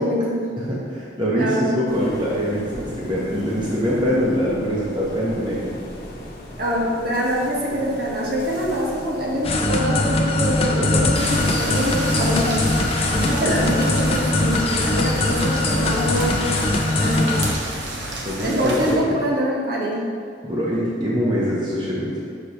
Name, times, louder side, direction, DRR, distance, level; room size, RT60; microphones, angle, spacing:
voice 1, 0.0-0.6 1.4-1.8 6.6-12.6 13.1-17.5 18.4-20.0 20.7-20.8, equal, 55° right, -4 dB, 1.3 m, -24 dB
voice 2, 0.6-5.7 13.4-13.5 18.2-19.2 20.4-22.1, equal, 25° right, -6 dB, 0.8 m, -23 dB
sound 1, 1.9-11.9, left 1 dB, 55° left, 1.0 m, -38 dB
sound 2, 9.4-17.5, left 2 dB, 30° left, 0.5 m, -21 dB
sound 3, 11.1-19.0, right 1 dB, 80° right, 1.0 m, -30 dB
6.5 x 3.0 x 5.6 m, 2.3 s
head